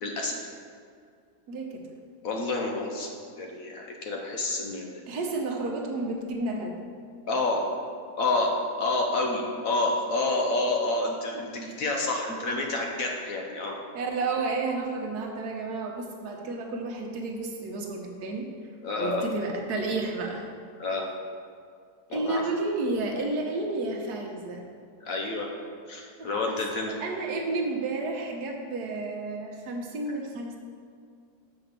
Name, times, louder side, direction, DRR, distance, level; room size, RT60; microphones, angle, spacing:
voice 1, 0.0-0.4 2.2-3.1 3.4-5.0 7.3-7.7 8.2-8.5 8.8-13.8 18.8-19.2 20.8-21.1 22.1-22.4 25.0-25.5 25.9-27.0, left 2 dB, 55° left, 1 dB, 1.1 m, -28 dB
voice 2, 1.5-1.9 5.1-6.8 11.5-11.8 13.9-18.5 19.0-20.5 22.1-24.6 25.2-25.3 26.2-26.6 27.0-30.6, right 3 dB, 65° right, 1 dB, 1.4 m, -31 dB
5.9 x 5.2 x 6.6 m, 2.2 s
omnidirectional pair, 1.9 m